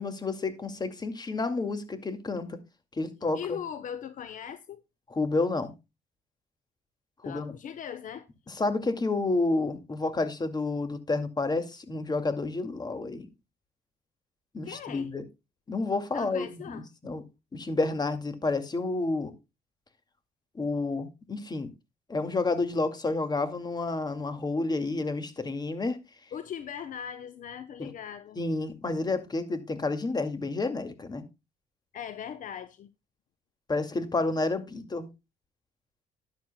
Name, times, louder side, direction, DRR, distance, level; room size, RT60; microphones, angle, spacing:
voice 1, 0.0-2.6 3.0-3.6 5.1-5.7 7.3-7.5 8.5-13.3 14.5-15.2 15.7-17.2 17.5-19.3 20.6-21.7 22.1-26.0 27.8-27.9 28.4-31.2 33.7-35.1, left 3 dB, 25° left, 2.2 m, -30 dB
voice 2, 3.3-4.8 7.2-8.3 14.6-15.1 16.1-16.9 26.3-28.4 31.9-32.9, left 8 dB, 60° left, 0.9 m, -39 dB
13.0 x 10.5 x 2.2 m
cardioid pair, 85°, 15 cm